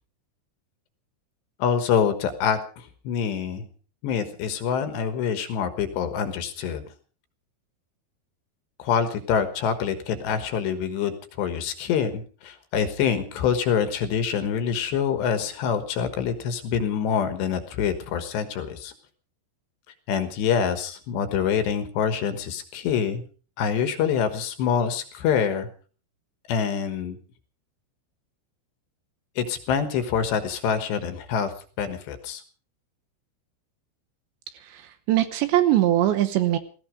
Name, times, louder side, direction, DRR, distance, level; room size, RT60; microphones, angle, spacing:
voice 1, 1.6-3.7 4.0-6.8 8.8-18.9 20.1-23.2 23.6-25.7 26.5-27.2 29.4-31.5 31.8-32.4, left 7 dB, 70° left, 9 dB, 3.2 m, -26 dB
voice 2, 34.6-36.6, right 13 dB, 75° right, 11 dB, 3.0 m, -22 dB
17.5 x 15.5 x 5.1 m, 0.40 s
omnidirectional pair, 5.8 m